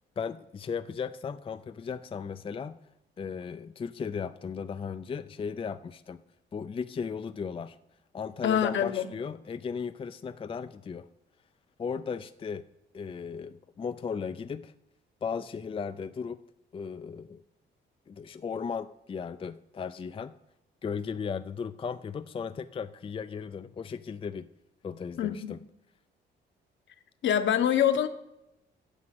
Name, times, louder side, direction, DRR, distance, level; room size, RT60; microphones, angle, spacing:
voice 1, 0.2-2.8 3.2-6.2 6.5-7.8 8.1-11.0 11.8-12.6 12.9-14.7 15.2-16.4 16.7-17.4 18.1-20.3 20.8-24.5 24.8-25.6, left 6 dB, 25° left, 11 dB, 0.4 m, -36 dB
voice 2, 8.4-9.1 25.2-25.5 27.2-28.1, left 9 dB, 70° left, 8 dB, 1.1 m, -25 dB
9.9 x 6.3 x 7.7 m, 0.87 s
cardioid pair, 90°, 20 cm